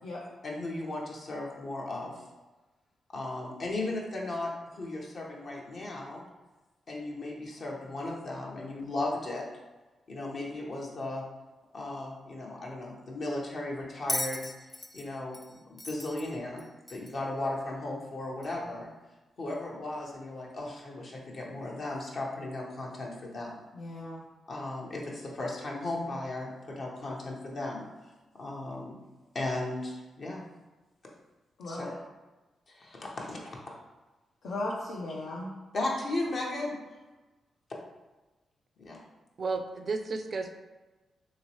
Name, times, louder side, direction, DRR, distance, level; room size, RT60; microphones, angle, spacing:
voice 1, 0.4-2.2 3.1-6.2 6.9-9.5 10.1-11.2 11.7-14.5 14.9-15.4 15.7-16.6 16.9-18.9 19.4-23.6 24.5-27.9 28.4-29.0 29.3-30.4 31.6-31.9 32.7-33.7 35.7-36.8 38.8-39.0, left 2 dB, 60° left, -2 dB, 0.8 m, -36 dB
Bell, 14.1-17.3 18.4-18.5, left 1 dB, 20° left, 0.3 m, -37 dB
voice 2, 23.7-24.2 31.6-31.9 34.4-35.5, left 1 dB, 80° left, -5 dB, 0.5 m, -36 dB
voice 3, 39.4-40.6, right 4 dB, 55° right, 6 dB, 0.4 m, -33 dB
3.0 x 2.9 x 2.9 m, 1.2 s
supercardioid pair, 45°, 0 cm